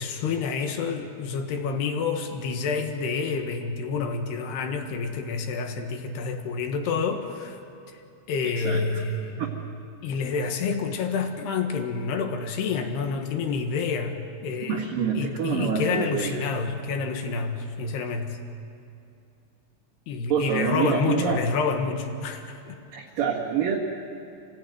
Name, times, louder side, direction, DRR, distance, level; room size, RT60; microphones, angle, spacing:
voice 1, 0.0-7.6 8.3-9.5 10.0-14.9 15.1-18.4 20.1-22.7, left 5 dB, 65° left, 5 dB, 3.2 m, -28 dB
voice 2, 14.6-16.4 20.3-21.4 22.9-23.8, right 7 dB, 55° right, -4 dB, 2.9 m, -26 dB
28.0 x 17.5 x 9.4 m, 2.7 s
omnidirectional pair, 5.9 m